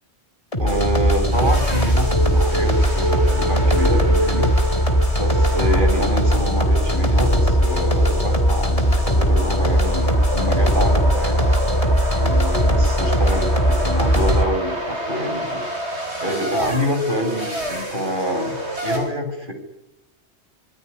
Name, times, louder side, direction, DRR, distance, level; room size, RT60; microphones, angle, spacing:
sound 1, 0.5-14.4, equal, 30° left, 4.5 m, -19 dB
voice 1, 0.6-4.5 5.2-11.5 12.2-15.6 16.2-18.6 18.8-19.5, equal, 45° right, 4 dB, 7.8 m, -26 dB
sound 2, 1.3-19.0, right 1 dB, 75° right, 6.8 m, -28 dB
26.0 x 22.0 x 10.0 m, 0.91 s
omnidirectional pair, 1.1 m